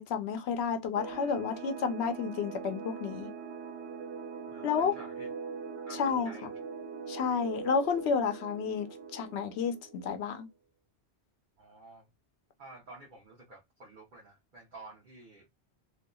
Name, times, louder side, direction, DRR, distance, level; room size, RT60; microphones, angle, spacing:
voice 1, 0.0-3.3 4.6-4.9 6.0-6.3 7.1-10.5, left 6 dB, 80° left, 0.9 m, -31 dB
sound 1, 1.0-10.3, right 5 dB, 90° right, 0.9 m, -42 dB
voice 2, 4.5-5.3 5.9-6.5 11.6-12.1 12.6-15.5, right 2 dB, 55° right, 0.8 m, -51 dB
2.7 x 2.4 x 2.2 m
omnidirectional pair, 1.1 m